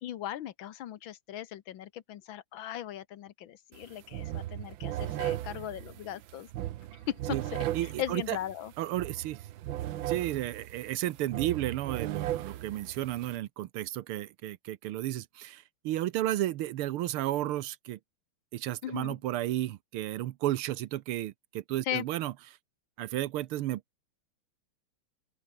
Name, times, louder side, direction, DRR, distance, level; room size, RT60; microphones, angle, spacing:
voice 1, 0.0-6.5 7.1-7.2 7.5-7.6 8.0-8.7 18.8-19.2 21.9-22.0, left 11 dB, 70° left, 1.6 m, -38 dB
sound 1, 3.7-13.4, right 13 dB, 70° right, 1.5 m, -37 dB
voice 2, 7.7-8.4 8.8-9.4 10.1-18.0 18.5-22.3 23.0-23.8, right 14 dB, 85° right, 1.7 m, -33 dB
open air
omnidirectional pair, 2.4 m